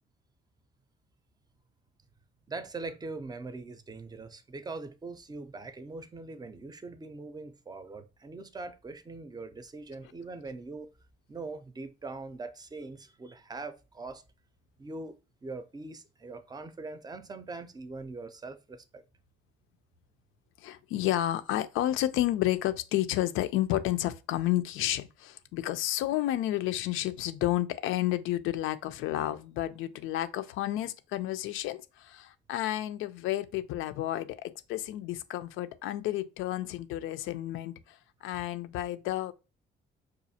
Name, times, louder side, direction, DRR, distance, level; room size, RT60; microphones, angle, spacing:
voice 1, 2.5-10.9 11.3-14.2 14.8-15.1 15.4-19.0, right 3 dB, 20° right, 0.5 m, -42 dB
voice 2, 20.6-39.3, left 14 dB, 90° left, 0.4 m, -31 dB
4.9 x 2.4 x 2.7 m
cardioid pair, 90°, 20 cm